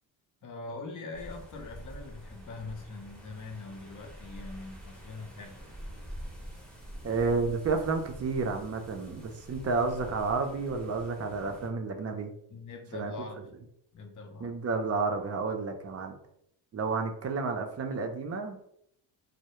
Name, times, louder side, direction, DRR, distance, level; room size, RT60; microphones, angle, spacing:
voice 1, 0.4-5.6 12.5-13.4 13.9-14.6, left 3 dB, 40° left, 4 dB, 0.6 m, -42 dB
sound 1, 1.1-11.7, equal, ahead, 0.7 m, -46 dB
voice 2, 7.0-12.3 12.9-13.1 14.4-16.1 16.7-18.6, right 4 dB, 35° right, 4 dB, 0.5 m, -31 dB
2.1 x 2.1 x 2.9 m, 0.71 s
cardioid pair, 80°, 46 cm